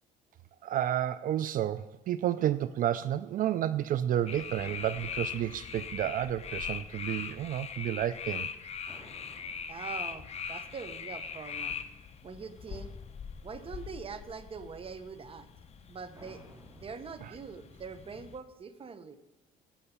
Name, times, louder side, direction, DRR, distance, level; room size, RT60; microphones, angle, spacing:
voice 1, 0.6-8.5 17.2-17.3, right 11 dB, 55° right, 14 dB, 0.4 m, -31 dB
sound 1, 4.3-18.4, left 7 dB, 40° left, 1.0 m, -41 dB
sound 2, 8.9-11.9 16.1-17.2, right 1 dB, 20° right, 2.7 m, -56 dB
voice 2, 9.7-11.8 12.2-12.9 13.4-15.5 15.9-16.4 16.7-19.2, right 5 dB, 35° right, 11 dB, 1.0 m, -43 dB
12.5 x 5.5 x 6.9 m, 1.0 s
cardioid pair, 110°, 17 cm